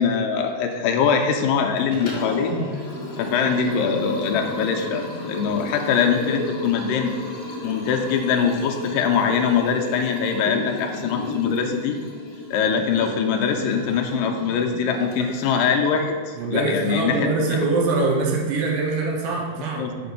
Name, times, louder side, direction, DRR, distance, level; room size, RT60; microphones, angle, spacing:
voice 1, 0.0-2.5 3.2-7.1 7.6-12.0 12.5-17.3 19.8-19.9, left 6 dB, 80° left, 3 dB, 2.1 m, -22 dB
Liquid, 1.8-15.9, left 2 dB, 55° left, 2.2 m, -33 dB
voice 2, 16.3-20.1, right 3 dB, 75° right, -1 dB, 2.7 m, -23 dB
6.8 x 4.4 x 5.2 m, 1.6 s
omnidirectional pair, 4.3 m